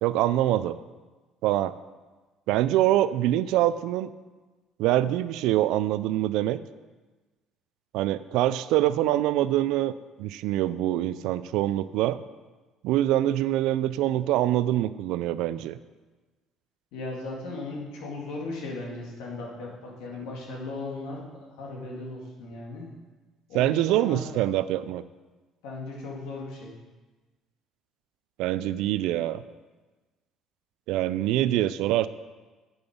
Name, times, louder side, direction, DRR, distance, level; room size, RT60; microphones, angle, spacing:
voice 1, 0.0-0.8 1.4-1.7 2.5-4.1 4.8-6.6 7.9-9.9 10.2-12.2 12.8-15.8 23.5-25.0 28.4-29.4 30.9-32.1, right 13 dB, 80° right, 15 dB, 0.4 m, -24 dB
voice 2, 16.9-22.9 23.5-24.4 25.6-26.7, left 2 dB, 90° left, -3 dB, 2.5 m, -37 dB
8.0 x 6.9 x 5.3 m, 1.3 s
cardioid pair, 135°, 0 cm